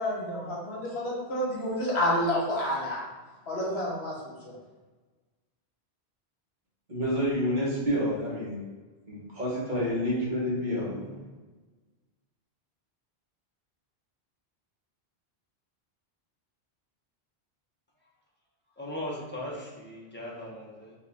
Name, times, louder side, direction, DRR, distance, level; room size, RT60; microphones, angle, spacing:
voice 1, 0.0-3.0 3.5-4.1 4.4-4.5, left 1 dB, 75° left, -4 dB, 1.5 m, -29 dB
voice 2, 6.9-8.6 9.1-11.2, equal, 45° right, -6 dB, 1.4 m, -29 dB
voice 3, 18.8-20.9, left 1 dB, 10° left, -4 dB, 0.8 m, -38 dB
4.6 x 2.9 x 3.5 m, 1.3 s
omnidirectional pair, 1.1 m